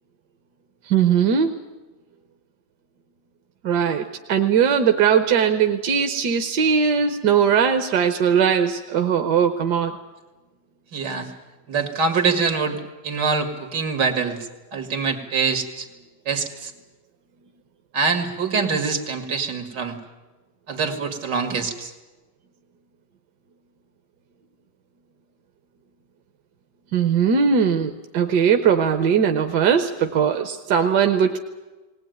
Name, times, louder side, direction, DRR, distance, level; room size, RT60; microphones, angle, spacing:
voice 1, 0.9-1.5 3.6-9.9 26.9-31.4, right 7 dB, 75° right, 6 dB, 1.6 m, -19 dB
voice 2, 10.9-11.3 11.7-14.4 14.7-15.9 16.3-16.7 17.9-20.0 20.7-21.9, right 5 dB, 90° right, 7 dB, 2.8 m, -24 dB
19.5 x 19.5 x 9.3 m, 1.2 s
omnidirectional pair, 1.8 m